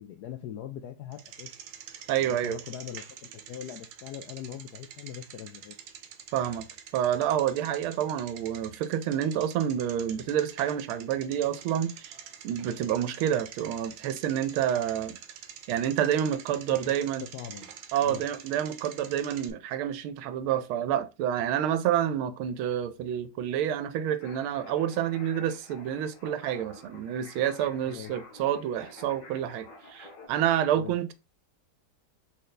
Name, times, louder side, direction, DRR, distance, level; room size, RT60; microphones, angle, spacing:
voice 1, 0.0-1.6 2.2-5.7 16.9-17.0 17.2-17.7 18.0-18.2 27.9-28.1 30.7-31.0, left 10 dB, 85° left, 0.8 m, -41 dB
Bicycle, 1.1-19.5, right 8 dB, 70° right, 1.3 m, -47 dB
voice 2, 2.1-2.6 6.3-6.7 6.9-12.1 12.4-15.2 15.7-17.2 17.9-31.1, right 10 dB, 90° right, 1.4 m, -28 dB
sound 1, 24.2-30.3, left 3 dB, 65° left, 1.7 m, -50 dB
4.1 x 3.2 x 3.9 m
omnidirectional pair, 2.2 m